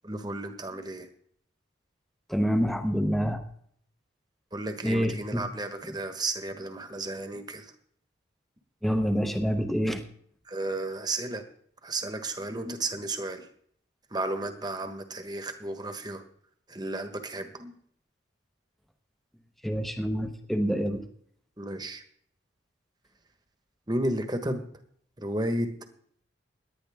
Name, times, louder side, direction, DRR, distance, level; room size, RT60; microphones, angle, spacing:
voice 1, 0.0-1.1 4.5-7.6 10.5-11.4 11.8-13.4 14.1-16.2 16.7-17.7 21.6-22.0 23.9-24.6 25.2-25.7, right 2 dB, 20° right, 8 dB, 1.3 m, -33 dB
voice 2, 2.3-3.4 4.8-5.4 5.8-5.9 8.8-10.0 19.6-21.0, equal, ahead, 6 dB, 0.9 m, -27 dB
18.0 x 11.0 x 3.6 m, 0.62 s
head